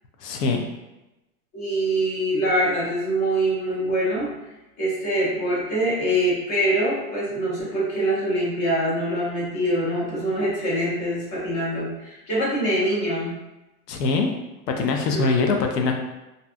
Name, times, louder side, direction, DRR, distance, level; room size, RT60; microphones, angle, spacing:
voice 1, 0.2-0.6 13.9-14.3 14.7-15.9, left 4 dB, 80° left, 3 dB, 0.7 m, -22 dB
voice 2, 1.5-4.3 4.8-13.4 15.1-15.2, right 1 dB, 25° left, -6 dB, 0.7 m, -24 dB
2.6 x 2.2 x 2.4 m, 0.99 s
hypercardioid pair, 155°, 48 cm